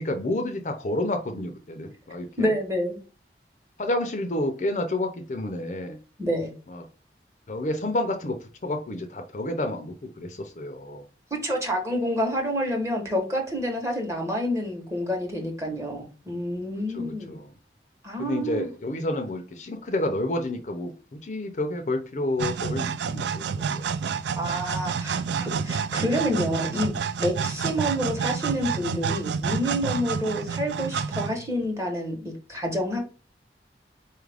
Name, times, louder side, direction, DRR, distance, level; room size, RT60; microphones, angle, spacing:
voice 1, 0.0-2.5 3.8-6.0 6.7-6.8 7.5-11.0 16.9-17.5 18.2-23.4 23.7-23.9 27.6-27.8, left 1 dB, 40° left, 5 dB, 0.5 m, -30 dB
voice 2, 2.4-3.0 6.2-6.5 11.4-17.3 18.0-18.7 24.4-26.9 27.2-33.0, equal, 15° right, 2 dB, 0.9 m, -28 dB
sound 1, 22.4-31.7, right 6 dB, 80° right, 0.3 m, -29 dB
4.3 x 2.4 x 3.3 m, 0.35 s
head